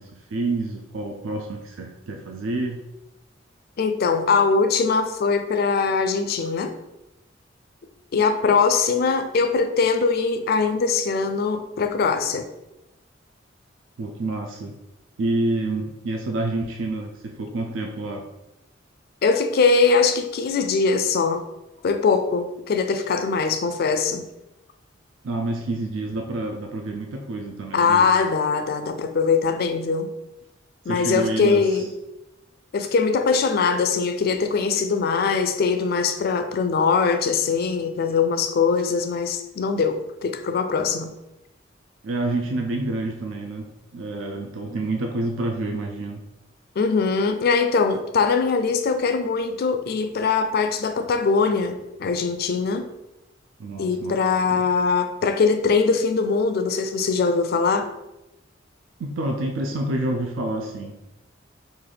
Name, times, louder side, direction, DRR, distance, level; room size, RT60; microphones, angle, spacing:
voice 1, 0.0-2.8 14.0-14.8 15.2-18.3 25.2-28.1 30.9-31.9 42.0-46.2 53.6-54.6 59.0-61.0, right 2 dB, 85° right, 3 dB, 0.4 m, -28 dB
voice 2, 3.8-6.7 8.1-12.5 19.2-21.4 21.8-24.3 27.7-30.1 30.9-31.9 32.7-41.1 46.8-52.9 53.8-57.9, left 5 dB, 50° left, 8 dB, 0.3 m, -22 dB
3.2 x 2.5 x 3.8 m, 0.93 s
head